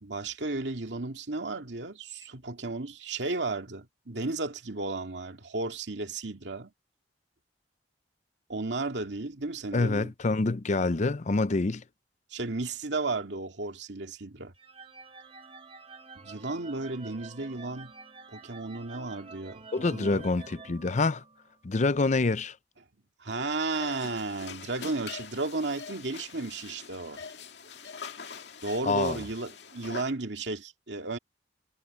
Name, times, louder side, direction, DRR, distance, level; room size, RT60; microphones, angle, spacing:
voice 1, 0.0-6.7 8.5-10.1 12.3-14.5 16.2-17.9 18.3-20.3 23.2-27.2 28.6-31.2, right 3 dB, 80° right, 2.3 m, -34 dB
voice 2, 9.7-11.8 19.7-21.2 21.6-22.6 28.8-29.2, left 3 dB, 40° left, 0.6 m, -26 dB
sound 1, 14.6-21.6, right 4 dB, 30° right, 1.6 m, -49 dB
sound 2, 23.7-30.0, left 5 dB, 70° left, 2.3 m, -43 dB
head